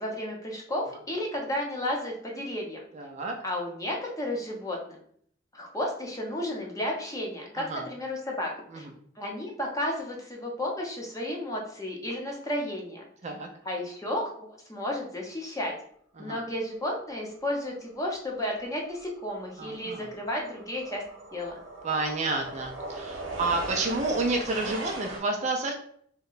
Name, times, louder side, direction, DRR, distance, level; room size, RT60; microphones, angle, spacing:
voice 1, 0.0-2.8 3.4-5.0 5.5-8.5 8.8-8.9 9.2-13.0 13.6-15.7 16.2-21.0 21.3-21.6, left 1 dB, 15° left, -1 dB, 0.7 m, -33 dB
voice 2, 2.9-3.4 7.6-7.8 8.7-9.0 13.2-13.5 16.2-16.4 19.6-20.1 21.8-25.7, right 3 dB, 35° right, 2 dB, 0.4 m, -30 dB
sound 1, 18.4-18.6 18.9-25.2, right 2 dB, 80° right, 1.0 m, -39 dB
2.9 x 2.1 x 3.9 m, 0.62 s
head